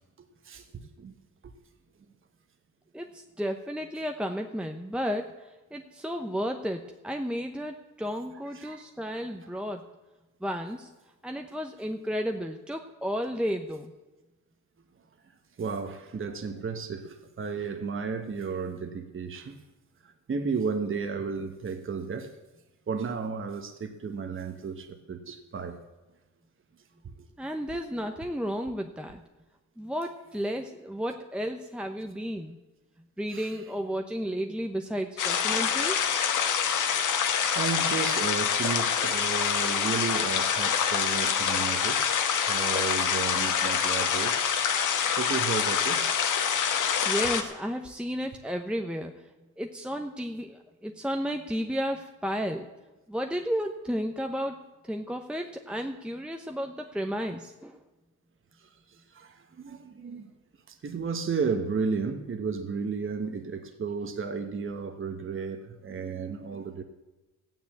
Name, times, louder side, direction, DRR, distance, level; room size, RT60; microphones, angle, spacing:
voice 1, 0.2-0.7 1.0-1.1 1.4-1.5 8.5-8.8 15.6-19.6 20.3-22.3 22.9-25.8 27.0-27.1 27.7-27.8 33.3-33.5 37.5-42.0 42.4-44.4 45.2-46.1 58.6-60.3 60.7-66.8, right 5 dB, 45° right, 1.3 m, -33 dB
voice 2, 2.9-9.8 10.4-10.9 11.2-13.9 27.4-29.2 29.8-32.6 33.2-36.0 47.0-49.3 49.6-52.7 53.1-54.6 54.8-57.8, equal, 5° right, 0.9 m, -33 dB
sound 1, 35.2-47.4, left 7 dB, 90° left, 1.6 m, -26 dB
14.0 x 9.2 x 8.6 m
cardioid pair, 100°, 30 cm